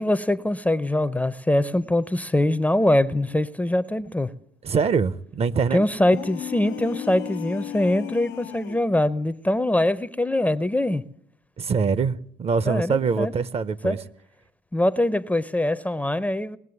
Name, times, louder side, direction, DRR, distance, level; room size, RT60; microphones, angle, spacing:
voice 1, 0.0-4.3 5.7-11.0 12.7-13.3 13.8-14.0 14.7-16.6, left 1 dB, 10° left, 0.5 m, -23 dB
voice 2, 4.6-5.8 11.6-14.0, right 5 dB, 35° right, 0.6 m, -24 dB
sound 1, 6.0-8.9, left 12 dB, 85° left, 0.6 m, -35 dB
19.5 x 7.4 x 9.7 m
cardioid pair, 110°, 17 cm